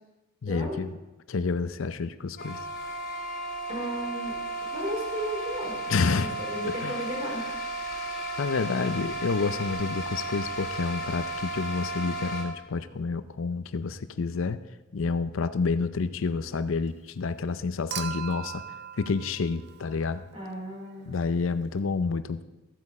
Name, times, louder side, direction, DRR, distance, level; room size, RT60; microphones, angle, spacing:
voice 1, 0.4-0.9 1.3-2.6 5.9-6.3 6.6-6.9 8.4-14.6 14.9-18.6 19.0-20.2 21.1-22.4, left 4 dB, 70° left, 13 dB, 0.5 m, -29 dB
sound 1, 2.4-12.4, right 1 dB, 45° left, 3.5 m, -34 dB
voice 2, 3.7-5.7 6.2-7.5 20.3-21.1, equal, 30° right, -3 dB, 4.0 m, -35 dB
Human group actions / Chink clink / Liquid, 17.9-20.3 21.8-21.9, right 9 dB, 50° right, 0.6 m, -39 dB
14.5 x 8.2 x 4.9 m, 1.1 s
head